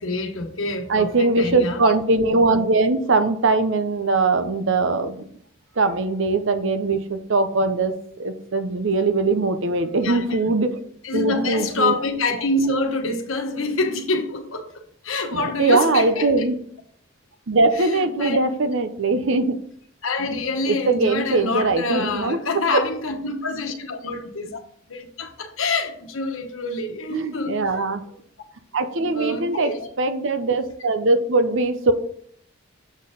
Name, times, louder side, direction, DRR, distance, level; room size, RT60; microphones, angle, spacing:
voice 1, 0.0-1.9 10.0-10.4 11.0-14.7 15.0-16.5 17.7-18.4 20.0-24.6 24.9-27.6 29.0-29.9, left 3 dB, 70° left, 1.1 m, -26 dB
voice 2, 0.9-5.2 5.8-10.8 11.1-11.9 15.3-16.6 17.5-19.6 20.7-22.4 22.7-22.8 27.1-28.0 28.7-29.7 30.0-31.9, right 3 dB, 60° right, 0.7 m, -21 dB
7.3 x 4.4 x 5.1 m
head